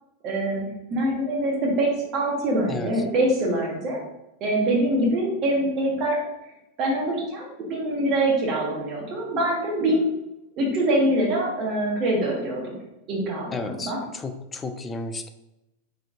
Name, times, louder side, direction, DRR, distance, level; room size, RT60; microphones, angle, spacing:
voice 1, 0.2-4.0 4.4-6.2 6.8-10.1 10.6-12.8 13.1-14.0, right 1 dB, 35° right, 0 dB, 1.1 m, -24 dB
voice 2, 13.5-15.3, left 3 dB, 15° left, 7 dB, 0.3 m, -33 dB
4.1 x 2.8 x 2.6 m, 0.94 s
figure-of-eight pair, 90°, 0 cm